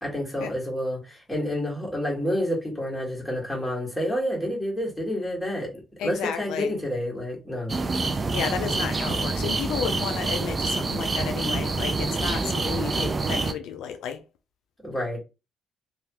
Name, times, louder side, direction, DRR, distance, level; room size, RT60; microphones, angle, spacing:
voice 1, 0.0-7.8 14.8-15.2, equal, 5° left, 1.7 m, -29 dB
voice 2, 6.0-6.8 8.3-14.2, left 8 dB, 90° left, 0.4 m, -32 dB
sound 1, 7.7-13.5, right 3 dB, 30° right, 0.4 m, -26 dB
3.1 x 2.3 x 3.0 m
cardioid pair, 90°, 0 cm